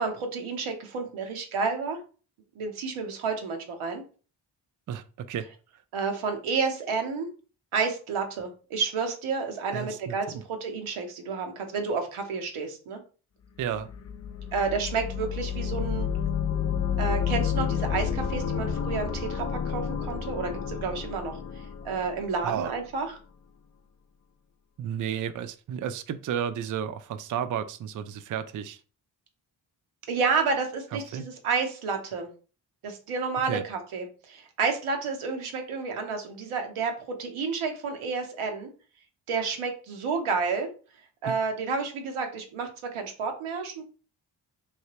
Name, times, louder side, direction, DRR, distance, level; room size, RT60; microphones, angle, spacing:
voice 1, 0.0-2.0 2.6-4.0 5.9-7.3 7.7-13.0 14.5-16.1 17.0-21.4 21.8-23.1 30.1-32.3 32.8-36.9 37.2-38.7 39.3-40.7 41.2-43.8, right 5 dB, 90° right, 4 dB, 0.8 m, -30 dB
voice 2, 4.9-5.4 9.7-10.4 13.6-13.9 22.4-22.7 24.8-28.8 30.9-31.3 33.4-33.6 41.2-41.3, right 9 dB, 45° right, 11 dB, 0.4 m, -32 dB
sound 1, 13.7-22.6, left 8 dB, 35° left, 0.4 m, -30 dB
3.2 x 2.8 x 2.9 m, 0.38 s
supercardioid pair, 45°, 48 cm